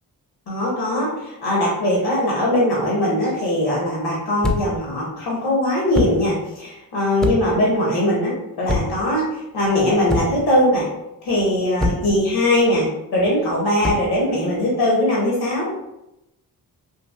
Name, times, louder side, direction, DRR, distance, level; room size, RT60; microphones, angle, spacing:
voice 1, 0.5-10.8 11.2-15.7, left 1 dB, 80° left, -4 dB, 1.0 m, -20 dB
sound 1, 4.4-4.8 5.9-6.3 7.2-7.6 8.7-9.1 10.1-10.5 11.8-12.2 13.8-14.1, left 2 dB, ahead, 0.3 m, -24 dB
3.2 x 2.5 x 2.3 m, 0.89 s
cardioid pair, 60°, 39 cm